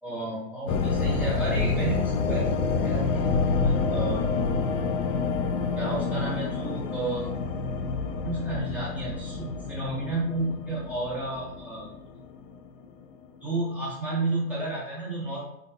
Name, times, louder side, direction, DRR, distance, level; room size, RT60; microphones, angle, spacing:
voice 1, 0.0-4.2 5.8-7.3 8.2-11.9 13.4-15.4, right 2 dB, 5° right, -8 dB, 0.9 m, -32 dB
sound 1, 0.7-12.8, left 4 dB, 60° left, 0.5 m, -28 dB
3.9 x 2.2 x 2.4 m, 0.88 s
hypercardioid pair, 125°, 43 cm